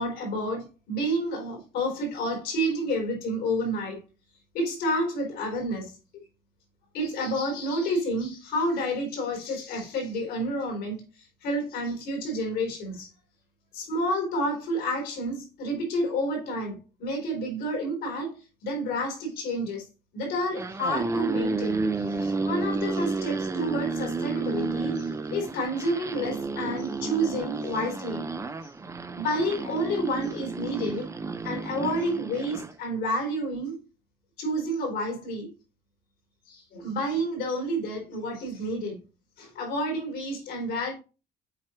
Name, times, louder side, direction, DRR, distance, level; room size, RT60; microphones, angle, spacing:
voice 1, 0.0-4.0 4.5-5.9 6.9-11.0 11.4-13.1 13.7-18.3 18.6-19.9 20.1-28.2 28.6-28.7 29.1-31.1 31.4-33.8 34.4-35.5 36.5-39.0 39.4-40.9, equal, 80° left, 3.8 m, -29 dB
sound 1, 20.4-32.7, right 3 dB, 15° right, 0.6 m, -31 dB
7.8 x 4.5 x 3.0 m
cardioid pair, 110°, 17 cm